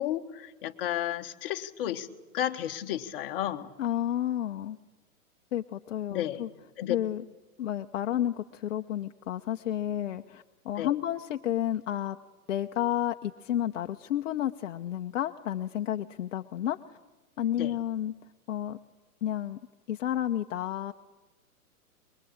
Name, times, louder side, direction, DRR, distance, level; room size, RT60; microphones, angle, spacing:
voice 1, 0.0-2.1 2.3-3.7 6.1-6.4 6.8-7.0 10.8-10.9 17.6-17.7, left 12 dB, 40° left, 5 dB, 1.5 m, -32 dB
voice 2, 3.8-4.8 5.5-6.5 6.9-7.2 7.6-12.2 12.5-17.0 17.4-18.1 18.5-18.8 19.2-19.6 19.9-20.9, left 11 dB, 55° left, 7 dB, 0.9 m, -31 dB
23.5 x 22.5 x 8.6 m, 1.2 s
hypercardioid pair, 155°, 44 cm